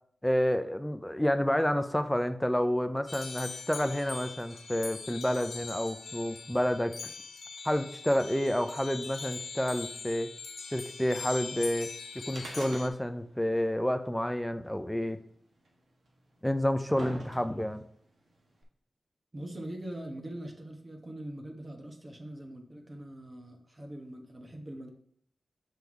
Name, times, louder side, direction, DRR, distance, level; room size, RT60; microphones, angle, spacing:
voice 1, 0.2-7.0 7.6-10.3 10.7-15.2 16.4-17.8, equal, 5° left, 10 dB, 0.4 m, -29 dB
sound 1, 3.1-12.9, left 4 dB, 85° left, 0.6 m, -42 dB
sound 2, 12.3-13.3 13.6-13.7 14.7-14.8 15.7-15.8 16.4-17.8 18.6-18.7, right 1 dB, 80° right, 1.3 m, -43 dB
voice 2, 19.3-24.9, right 1 dB, 30° right, 2 dB, 1.2 m, -42 dB
6.1 x 3.5 x 4.7 m, 0.63 s
cardioid pair, 60°, 0 cm